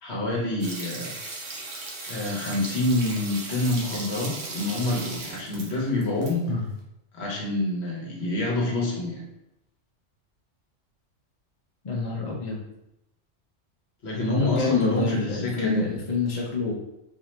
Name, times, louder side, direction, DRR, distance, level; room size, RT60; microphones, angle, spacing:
voice 1, 0.0-1.2 2.1-6.5 7.1-9.3 14.0-15.8, left 2 dB, 60° left, -2 dB, 1.2 m, -27 dB
sound 1, 0.6-6.3 6.6-6.7, right 3 dB, 80° right, 1.2 m, -37 dB
voice 2, 11.8-12.6 14.4-16.7, left 3 dB, 40° left, -3 dB, 0.7 m, -27 dB
4.0 x 2.7 x 3.1 m, 0.88 s
omnidirectional pair, 1.3 m